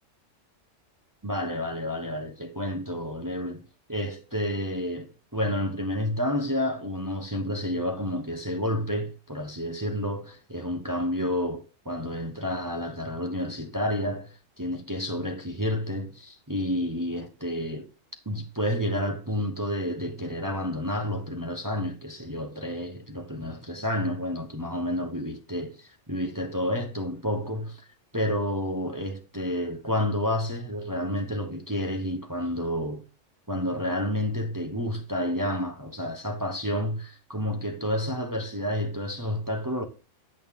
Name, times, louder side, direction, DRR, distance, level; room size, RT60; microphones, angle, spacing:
voice 1, 1.2-17.9 18.3-27.9 28.1-33.0 33.5-39.8, equal, 20° right, 0.7 m, -30 dB
8.6 x 6.4 x 3.5 m
omnidirectional pair, 1.4 m